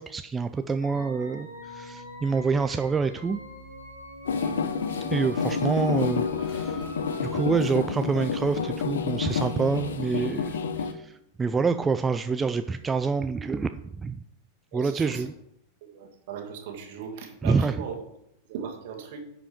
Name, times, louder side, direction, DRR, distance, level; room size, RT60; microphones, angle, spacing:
voice 1, 0.0-3.4 5.1-6.9 7.2-14.2 14.7-15.3 17.4-17.7, right 5 dB, 15° right, 9 dB, 0.3 m, -27 dB
sound 1, 0.8-7.7, equal, 85° left, 2.0 m, -43 dB
sound 2, 4.3-10.9, left 5 dB, 65° left, 0.7 m, -29 dB
voice 2, 14.7-15.3 15.8-18.0 18.5-19.2, right 7 dB, 50° right, 3 dB, 1.7 m, -38 dB
10.5 x 5.0 x 4.9 m, 0.78 s
figure-of-eight pair, 90°, 0 cm